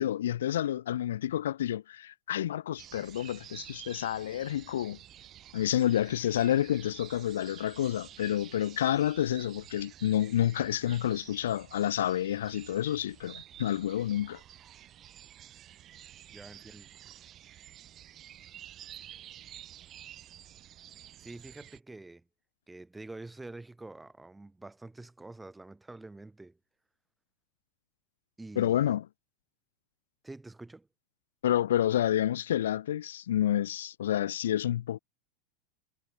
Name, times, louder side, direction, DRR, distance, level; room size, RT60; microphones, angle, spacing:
voice 1, 0.0-5.0 5.5-14.4 28.6-29.0 31.4-35.0, left 11 dB, 80° left, 0.4 m, -29 dB
sound 1, 2.8-21.8, right 12 dB, 40° right, 2.1 m, -50 dB
voice 2, 16.3-16.9 21.2-22.2 22.7-26.6 28.4-29.0 30.2-30.9, right 2 dB, 10° right, 4.8 m, -47 dB
hypercardioid pair, 105°, 0 cm